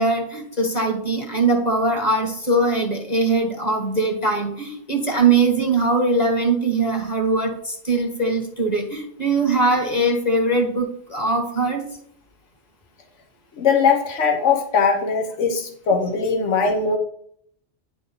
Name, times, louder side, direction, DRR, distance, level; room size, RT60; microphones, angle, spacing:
voice 1, 0.0-11.8, right 2 dB, 35° left, 2 dB, 1.7 m, -21 dB
voice 2, 13.6-17.0, left 5 dB, 85° left, 4 dB, 1.3 m, -20 dB
10.0 x 4.9 x 3.9 m, 0.66 s
omnidirectional pair, 1.2 m